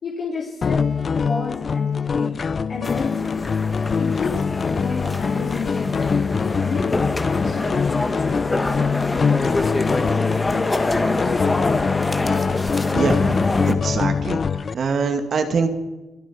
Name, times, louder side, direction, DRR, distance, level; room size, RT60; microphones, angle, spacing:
voice 1, 0.0-0.9 1.2-2.4 2.7-3.5 3.9-6.9 7.3-8.4, left 4 dB, 55° left, -3 dB, 3.3 m, -31 dB
sound 1, 0.6-14.7, left 5 dB, 40° left, 0.5 m, -23 dB
sound 2, 2.8-13.7, left 2 dB, 20° left, 1.4 m, -25 dB
voice 2, 12.9-14.4 14.7-15.7, right 5 dB, 55° right, 6 dB, 2.2 m, -23 dB
28.5 x 10.5 x 4.5 m, 1.1 s
cardioid pair, 90°, 0 cm